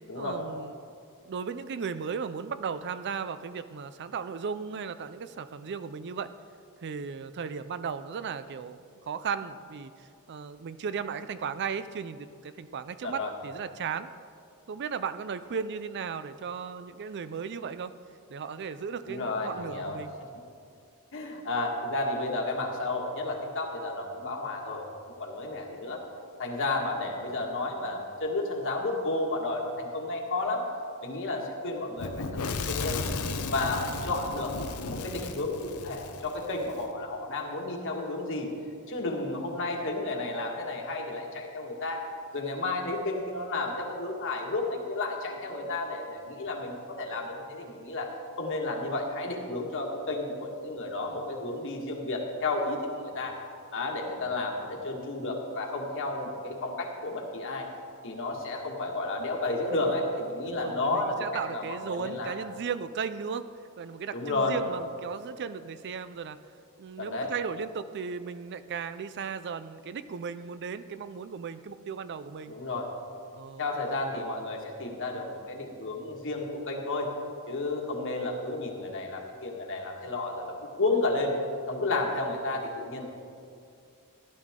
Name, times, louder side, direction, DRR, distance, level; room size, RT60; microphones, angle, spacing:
voice 1, 0.1-0.7 1.2-6.3 6.8-8.8 9.1-9.9 10.3-14.1 14.7-17.9 18.3-20.1 60.5-63.5 63.8-66.4 66.8-72.5 73.3-73.6, right 6 dB, 50° right, 12 dB, 0.4 m, -36 dB
voice 2, 19.1-20.0 21.1-26.0 26.4-30.6 31.0-32.3 32.5-33.1 33.5-34.5 34.8-38.5 38.9-42.0 42.3-48.1 48.4-53.4 53.7-57.7 58.0-62.3 64.1-64.6 67.0-67.3 72.5-72.9 73.6-77.1 77.5-81.3 81.7-83.1, left 2 dB, 60° left, 0 dB, 1.7 m, -32 dB
Fire / Explosion, 32.0-36.8, left 3 dB, 85° left, 0.8 m, -35 dB
15.0 x 11.0 x 3.7 m, 2.4 s
head